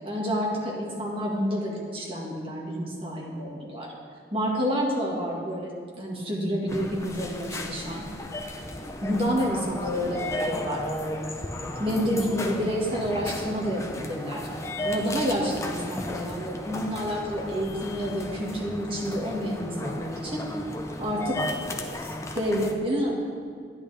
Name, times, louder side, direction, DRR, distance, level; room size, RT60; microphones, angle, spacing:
voice 1, 0.0-3.9 4.3-5.7 6.0-8.0 9.0-10.8 11.8-14.4 14.8-20.5 21.0-21.4 22.0-23.2, equal, 30° right, -3 dB, 1.8 m, -29 dB
sound 1, 6.7-22.7, left 1 dB, 15° left, 0.6 m, -34 dB
10.5 x 10.5 x 3.4 m, 2.1 s
head